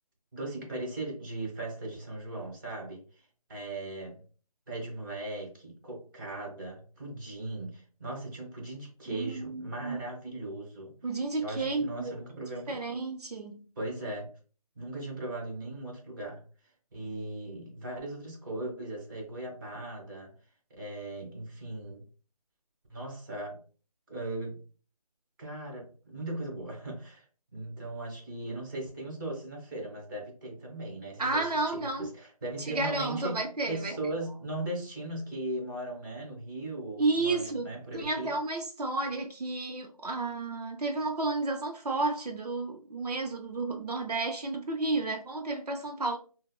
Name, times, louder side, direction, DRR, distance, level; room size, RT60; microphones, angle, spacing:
voice 1, 0.3-4.2 4.7-11.0 11.4-12.7 13.8-14.3 14.7-16.4 16.9-20.3 20.8-22.0 22.9-23.6 24.1-24.6 25.4-27.2 27.5-38.3, right 2 dB, 35° right, 1.2 m, -38 dB
voice 2, 9.1-10.0 11.0-12.2 12.7-13.6 31.2-32.1 32.6-34.0 37.0-37.7 37.9-46.2, right 3 dB, 80° right, 0.6 m, -31 dB
4.0 x 2.1 x 2.3 m
figure-of-eight pair, 165°, 20 cm